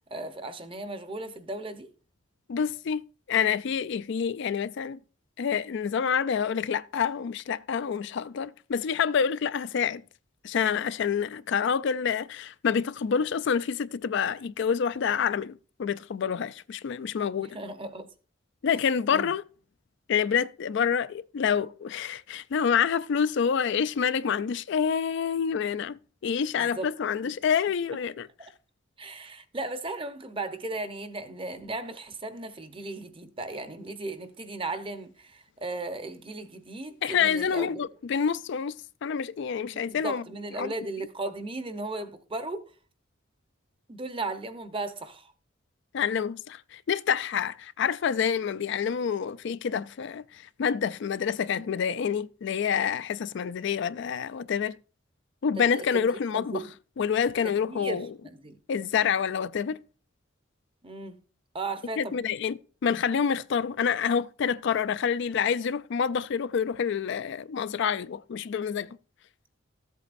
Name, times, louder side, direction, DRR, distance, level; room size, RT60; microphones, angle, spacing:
voice 1, 0.1-1.9 17.4-18.1 19.1-19.3 26.6-26.9 27.2-27.3 28.4-28.5 29.0-37.8 39.7-42.6 43.9-45.3 55.8-56.1 56.3-56.7 57.4-58.6 60.8-61.2 61.5-62.2, right 2 dB, 25° right, 0.9 m, -36 dB
voice 2, 2.5-3.0 3.3-5.0 5.4-10.0 10.4-15.5 15.8-17.6 18.6-19.4 20.1-28.3 37.0-38.7 39.0-40.2 40.6-40.7 45.9-54.8 55.4-56.6 57.0-58.1 58.7-59.8 62.0-69.0, left 7 dB, 65° left, 0.4 m, -27 dB
14.0 x 8.2 x 2.6 m
head